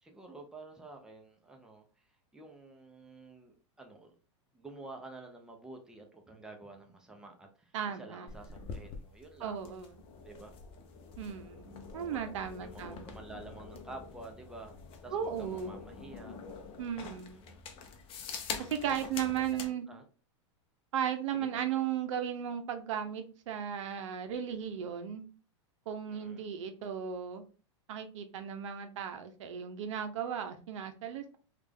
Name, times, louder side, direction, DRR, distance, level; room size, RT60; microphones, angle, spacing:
voice 1, 0.0-4.1 4.5-9.6 10.2-10.5 12.1-12.2 12.6-14.8 15.0-16.4 17.1-17.6 18.8-20.0 21.3-21.7 26.1-26.5, right 2 dB, 5° right, 0.6 m, -50 dB
voice 2, 7.7-8.3 9.4-9.9 11.2-13.1 15.1-15.8 16.8-17.4 18.6-19.9 20.9-25.2 25.9-27.4 27.9-31.4, right 8 dB, 70° right, 0.6 m, -36 dB
sound 1, 8.3-19.7, left 5 dB, 35° left, 0.6 m, -46 dB
3.2 x 2.4 x 3.4 m
hypercardioid pair, 115°, 16 cm